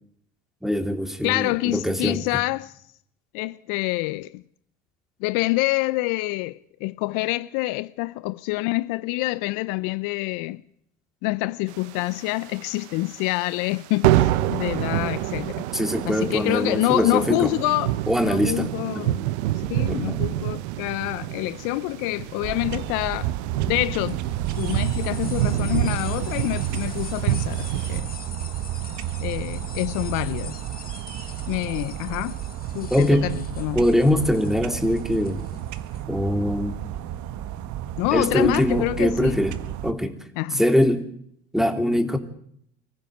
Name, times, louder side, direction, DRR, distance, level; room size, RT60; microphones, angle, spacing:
voice 1, 0.6-2.2 15.7-17.5 18.1-18.7 18.9-19.0 19.9-20.2 32.9-33.3 33.7-35.4 36.1-36.7 38.1-39.6 39.8-40.2 40.5-41.1 41.5-42.2, equal, ahead, 3.1 m, -22 dB
voice 2, 1.2-2.7 3.3-4.4 5.2-10.6 11.2-15.7 16.0-17.9 18.2-19.2 19.5-23.3 23.7-24.2 24.6-28.1 29.2-30.6 31.5-32.4 32.7-33.9 38.0-39.3 40.4-40.6, left 21 dB, 65° left, 0.8 m, -26 dB
sound 1, 11.8-12.8 13.1-13.3 13.6-13.8 14.0-28.0, right 14 dB, 80° right, 1.0 m, -27 dB
sound 2, 22.4-39.9, right 12 dB, 60° right, 1.5 m, -32 dB
sound 3, 24.1-36.0, left 5 dB, 25° left, 2.5 m, -43 dB
25.5 x 15.0 x 7.9 m
hypercardioid pair, 80°, 33 cm